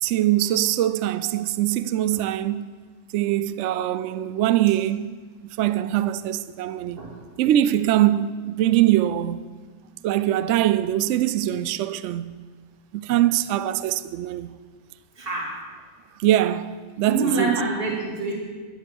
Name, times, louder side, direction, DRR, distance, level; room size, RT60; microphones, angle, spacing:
voice 1, 0.0-2.7 3.1-5.1 5.6-7.0 7.4-9.4 10.0-12.4 12.9-14.5 16.2-17.5, right 13 dB, 65° right, 0.8 m, -22 dB
voice 2, 15.2-15.5 17.1-18.3, right 3 dB, 40° right, 2.8 m, -25 dB
11.5 x 11.0 x 7.1 m
omnidirectional pair, 1.5 m